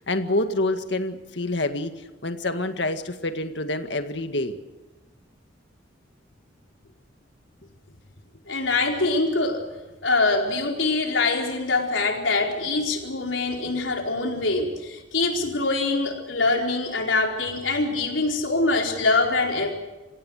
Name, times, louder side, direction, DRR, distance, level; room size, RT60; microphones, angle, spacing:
voice 1, 0.1-1.9 2.2-4.6, left 2 dB, 65° left, 7 dB, 1.9 m, -27 dB
voice 2, 8.5-9.6 10.0-19.7, left 3 dB, 85° left, 1 dB, 4.5 m, -24 dB
28.0 x 16.0 x 6.5 m, 1.2 s
head